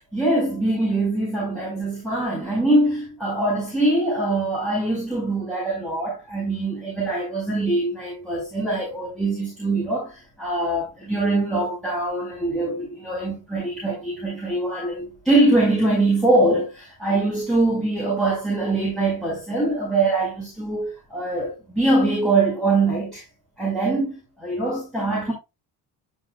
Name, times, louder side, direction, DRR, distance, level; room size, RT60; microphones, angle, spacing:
voice 1, 0.0-23.2 23.6-25.3, right 2 dB, ahead, 5.8 m, -23 dB
12.5 x 5.7 x 2.5 m
cardioid pair, 110°, 40 cm